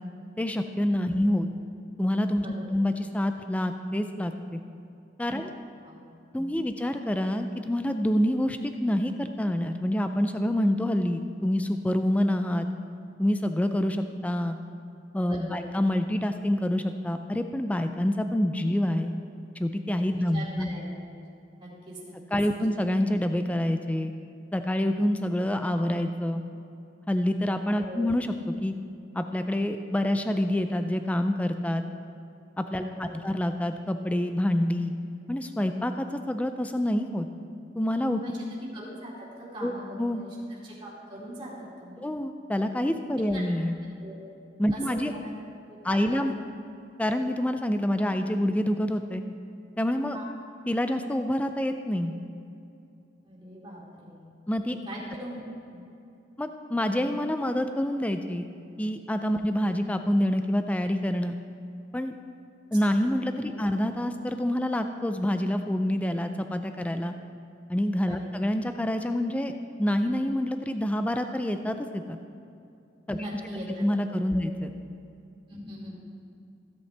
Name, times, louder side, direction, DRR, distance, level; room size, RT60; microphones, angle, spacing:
voice 1, 0.4-1.5 2.0-2.5 2.7-4.6 5.2-5.5 6.3-12.7 13.2-14.6 15.1-19.1 19.6-20.7 22.3-24.1 24.5-26.4 27.1-28.3 28.6-28.7 29.2-31.8 32.6-34.9 35.3-37.3 37.8-38.2 39.6-40.2 42.0-43.7 44.6-45.1 45.8-46.3 47.0-49.2 49.8-50.2 50.7-52.1 54.5-54.8 56.4-58.5 58.8-61.4 61.9-62.1 62.7-67.1 67.7-69.5 69.8-72.2 73.1-73.2 73.8-74.7, left 1 dB, 5° left, 7 dB, 0.3 m, -27 dB
voice 2, 6.3-6.7 15.3-15.6 20.2-21.2 21.6-22.1 22.5-22.6 27.8-28.0 32.8-33.1 38.2-40.4 40.6-42.1 43.3-43.4 44.0-44.2 44.7-44.8 45.2-45.3 45.7-46.2 50.1-50.2 53.2-54.3 54.9-55.4 55.7-55.8 63.5-63.6 68.1-68.3 73.1-74.4 75.5-76.0, equal, 25° right, -6 dB, 2.6 m, -41 dB
15.5 x 8.2 x 3.3 m, 2.6 s
head